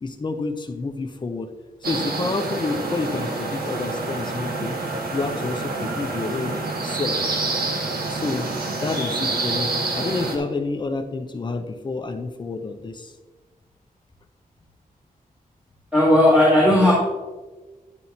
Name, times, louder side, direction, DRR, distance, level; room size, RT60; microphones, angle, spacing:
voice 1, 0.0-1.5 1.8-4.8 5.1-6.5 6.8-7.2 8.1-8.5 8.8-13.1, left 3 dB, 30° left, 5 dB, 0.7 m, -29 dB
sound 1, 1.8-10.4, right 3 dB, 85° right, 1.5 m, -27 dB
voice 2, 15.9-16.9, left 1 dB, 10° right, -9 dB, 2.1 m, -15 dB
10.5 x 9.5 x 2.9 m, 1.3 s
wide cardioid pair, 175°, 15 cm